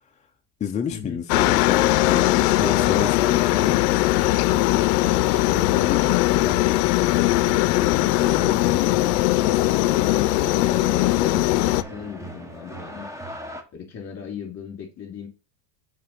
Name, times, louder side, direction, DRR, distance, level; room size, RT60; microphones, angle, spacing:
voice 1, 0.6-3.8, left 6 dB, 15° left, 0.4 m, -29 dB
Aircraft, 1.3-11.8, left 18 dB, 75° left, 0.6 m, -20 dB
sound 1, 1.7-13.6, equal, 5° right, 1.2 m, -38 dB
voice 2, 5.0-6.5 7.7-9.2 9.7-13.1 13.7-15.3, left 6 dB, 30° left, 3.4 m, -36 dB
6.7 x 3.8 x 5.6 m
supercardioid pair, 120°, 48 cm